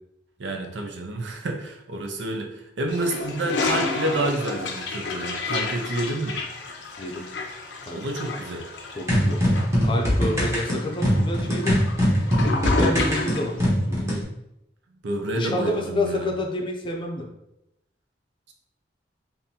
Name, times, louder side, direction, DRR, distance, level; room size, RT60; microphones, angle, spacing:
voice 1, 0.4-6.4 7.9-8.6 15.0-16.3, right 2 dB, 80° right, 3 dB, 0.6 m, -29 dB
Toilet flush, 2.9-13.5, left 3 dB, 85° left, 0.6 m, -31 dB
voice 2, 9.0-9.4 9.8-11.8 12.7-14.2 15.3-17.3, left 1 dB, 30° left, 1 dB, 0.5 m, -29 dB
sound 1, 9.1-14.2, equal, 15° right, 0.9 m, -22 dB
3.7 x 2.6 x 2.8 m, 0.84 s
head